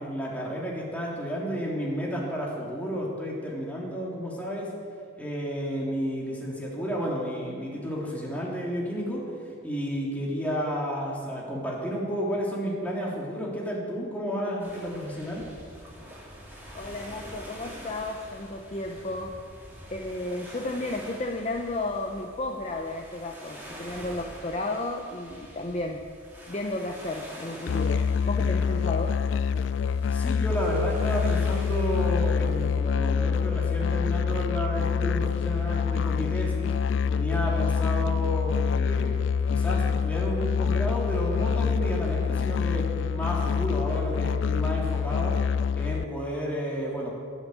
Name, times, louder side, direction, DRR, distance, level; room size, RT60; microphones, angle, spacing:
voice 1, 0.0-4.7 5.2-9.2 9.6-15.4 30.1-36.7 37.1-39.2 39.5-45.4 45.7-47.1, equal, 10° left, -4 dB, 3.0 m, -31 dB
sound 1, 14.6-32.8, equal, 10° right, 2.8 m, -46 dB
voice 2, 16.7-19.3 19.9-26.0 26.5-29.1, left 2 dB, 35° left, 2 dB, 0.8 m, -33 dB
Musical instrument, 27.7-46.0, left 6 dB, 65° left, 0.3 m, -26 dB
17.5 x 7.2 x 8.3 m, 2.2 s
head